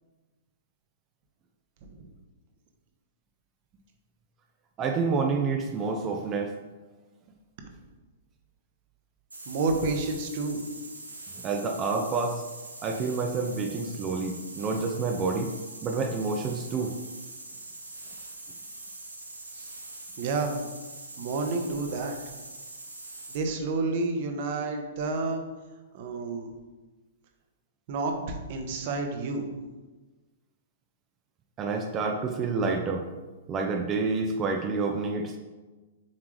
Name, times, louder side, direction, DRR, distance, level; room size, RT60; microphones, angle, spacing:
voice 1, 4.8-6.6 11.3-12.4 12.8-15.5 15.8-16.9 31.6-33.1 33.5-35.4, right 4 dB, 25° right, 3 dB, 0.6 m, -28 dB
sound 1, 9.3-23.4, right 2 dB, 85° right, 1.1 m, -43 dB
voice 2, 9.5-10.6 19.5-19.7 20.2-20.5 21.2-22.2 23.3-25.4 25.9-26.5 27.9-29.5, right 3 dB, 45° right, 4 dB, 1.0 m, -30 dB
7.3 x 4.8 x 3.1 m, 1.2 s
figure-of-eight pair, 110°, 0 cm